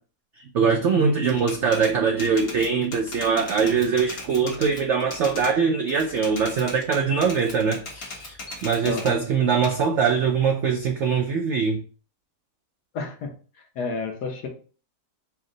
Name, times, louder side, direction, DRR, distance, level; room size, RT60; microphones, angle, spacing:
voice 1, 0.5-8.2 8.6-11.8, right 5 dB, 80° right, 0.6 m, -22 dB
Typewriter, 1.3-5.6 5.9-9.2 9.6-11.3, left 2 dB, 45° left, 1.1 m, -38 dB
voice 2, 8.8-9.2 12.9-13.3 13.8-14.5, left 3 dB, 75° left, 1.4 m, -30 dB
4.6 x 2.1 x 3.8 m
omnidirectional pair, 1.8 m